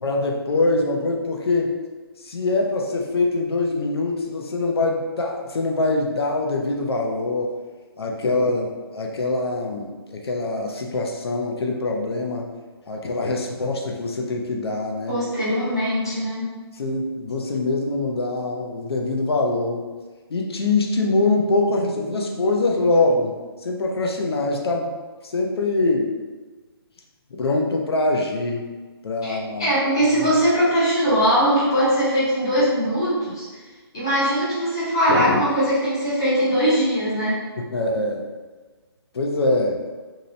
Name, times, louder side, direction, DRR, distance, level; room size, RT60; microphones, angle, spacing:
voice 1, 0.0-1.7 2.2-7.5 8.0-12.5 12.9-15.2 16.8-19.9 20.3-23.3 23.6-24.9 25.2-26.1 27.4-28.7 29.0-29.7 35.1-35.4 37.6-38.3 39.1-39.8, left 2 dB, 70° left, 1 dB, 0.5 m, -23 dB
voice 2, 15.1-16.5 29.2-33.4 33.9-37.5, equal, 10° left, -11 dB, 0.4 m, -21 dB
2.7 x 2.0 x 2.6 m, 1.3 s
hypercardioid pair, 180°, 13 cm